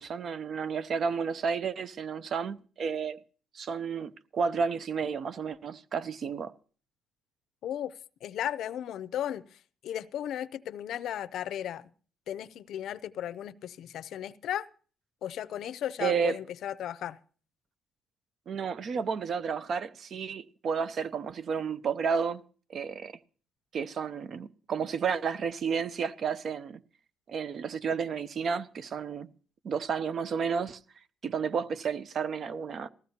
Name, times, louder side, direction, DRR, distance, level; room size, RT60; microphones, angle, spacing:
voice 1, 0.0-3.2 3.5-6.5 16.0-16.4 18.5-22.4 22.7-23.2 23.7-26.8 27.3-29.3 29.6-30.8 31.2-32.9, right 6 dB, 50° right, 0.6 m, -31 dB
voice 2, 7.6-7.9 8.2-11.9 12.3-14.7 15.2-17.2, left 11 dB, 75° left, 0.5 m, -35 dB
19.0 x 15.0 x 2.8 m
cardioid pair, 110°, 0 cm